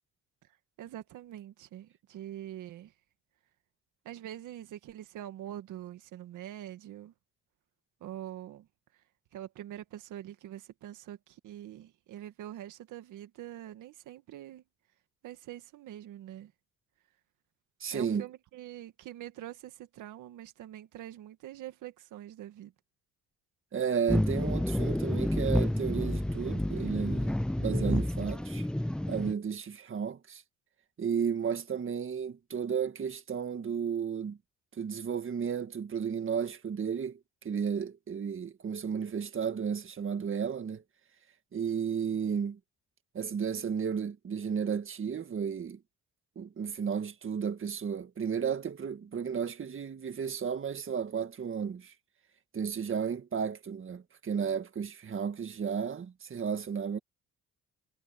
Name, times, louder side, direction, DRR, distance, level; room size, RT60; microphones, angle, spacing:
voice 1, 0.8-2.9 4.1-7.1 8.0-8.7 9.3-14.6 15.2-16.5 17.9-22.7, right 12 dB, 85° right, 2.0 m, -44 dB
voice 2, 17.8-18.3 23.7-27.3 27.6-28.7 29.1-30.4 31.0-34.4 34.7-37.2 37.4-40.8 41.5-42.6 43.1-45.8 46.4-51.9 52.5-57.0, right 7 dB, 45° right, 1.9 m, -33 dB
sound 1, 24.1-29.3, left 1 dB, 5° left, 0.4 m, -29 dB
cardioid pair, 90°, 30 cm